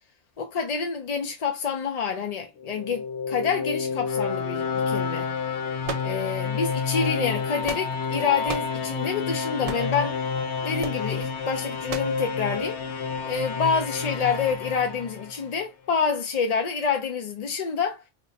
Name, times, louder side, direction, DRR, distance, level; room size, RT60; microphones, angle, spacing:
voice 1, 0.4-5.3 6.0-10.2 10.6-12.8 13.2-18.0, left 5 dB, 55° left, 0.4 m, -27 dB
sound 1, 2.6-15.6, left 5 dB, 80° left, 0.9 m, -29 dB
sound 2, 5.8-6.6 7.4-8.1 8.5-8.8 9.6-10.0 10.8-11.0 11.9-12.2, right 5 dB, 60° right, 0.3 m, -35 dB
2.9 x 2.0 x 4.0 m
omnidirectional pair, 1.2 m